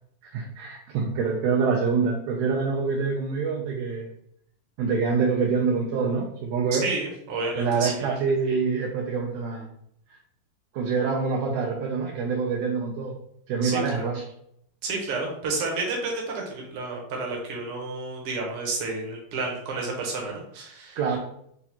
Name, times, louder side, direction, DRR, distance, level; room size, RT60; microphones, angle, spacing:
voice 1, 0.2-4.1 4.8-6.9 7.5-9.7 10.1-10.2 10.7-13.1 13.5-14.2 21.0-21.2, right 5 dB, 80° right, 1 dB, 1.6 m, -26 dB
voice 2, 6.7-8.0 13.6-14.0 14.8-21.0, right 3 dB, 60° right, -1 dB, 1.6 m, -31 dB
6.1 x 2.3 x 2.8 m, 0.71 s
omnidirectional pair, 3.4 m